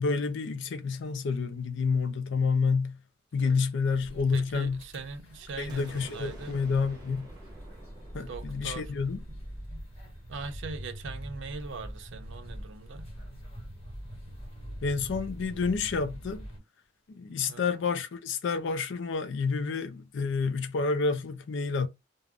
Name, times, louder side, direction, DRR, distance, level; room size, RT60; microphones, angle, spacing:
voice 1, 0.0-3.0 3.3-4.8 5.6-7.3 8.1-9.2 14.8-16.5 17.1-21.9, left 4 dB, 65° left, 0.4 m, -29 dB
sound 1, 3.9-16.6, equal, 30° left, 1.3 m, -43 dB
voice 2, 4.3-6.6 8.2-8.9 9.3-9.4 9.7-9.9 10.3-13.1 17.5-17.7, right 4 dB, 65° right, 0.5 m, -41 dB
sound 2, 5.7-11.5, right 1 dB, 20° right, 0.9 m, -51 dB
2.5 x 2.0 x 3.4 m
head